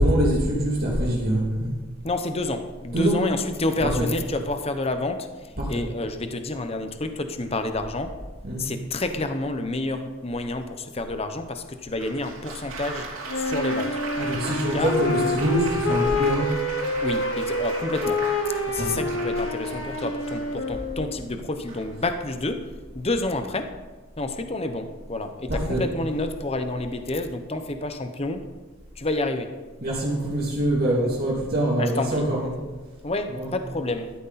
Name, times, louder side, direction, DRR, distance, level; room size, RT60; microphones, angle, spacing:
voice 1, 0.0-1.7 2.9-3.2 3.8-4.1 5.6-5.8 8.4-8.7 14.2-16.5 18.8-19.0 25.5-25.8 29.8-32.5 33.3-33.5, right 1 dB, 50° right, -5 dB, 3.0 m, -24 dB
voice 2, 2.0-8.1 8.6-13.1 13.3-14.0 14.5-15.0 17.0-18.2 18.7-22.6 22.9-23.7 24.2-28.4 29.0-29.5 31.8-32.3 33.0-34.1, left 2 dB, 30° left, 7 dB, 0.9 m, -29 dB
Applause, 12.0-20.9 21.7-22.1, right 3 dB, 85° right, 3.1 m, -37 dB
Wind instrument woodwind instrument, 13.3-21.3, left 2 dB, 65° left, 1.2 m, -27 dB
14.5 x 12.5 x 4.2 m, 1.3 s
head